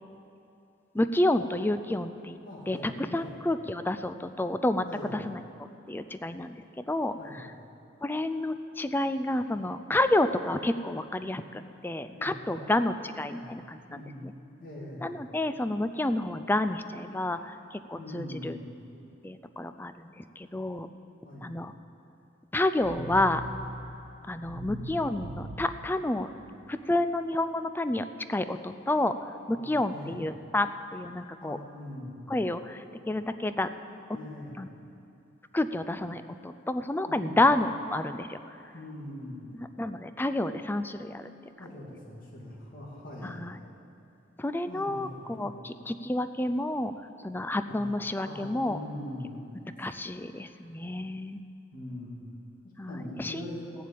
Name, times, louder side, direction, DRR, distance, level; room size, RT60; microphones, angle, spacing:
voice 1, 0.9-2.4 2.7-4.8 5.1-5.4 5.9-7.5 8.0-14.3 15.0-18.6 19.2-20.9 21.4-21.7 22.5-23.4 24.2-26.3 26.7-29.1 29.5-31.6 32.3-33.7 34.6-34.7 35.5-38.4 39.5-41.3 43.2-43.6 44.4-46.9 47.2-48.8 49.8-51.4 52.8-53.4, left 1 dB, 10° left, 10 dB, 0.4 m, -30 dB
voice 2, 2.4-3.3 4.9-5.1 7.2-7.4 12.1-12.7 13.3-13.5 13.9-15.0 17.9-18.7 21.2-21.5 24.5-24.9 29.5-30.1 31.4-32.2 34.1-34.5 37.1-37.4 38.7-39.5 41.6-43.4 44.7-45.5 47.7-47.9 48.2-49.3 51.7-52.1 52.9-53.6, left 1 dB, 45° left, -6 dB, 2.6 m, -42 dB
sound 1, 22.8-26.8, right 1 dB, 80° right, 0.7 m, -41 dB
15.5 x 7.4 x 8.5 m, 2.8 s
head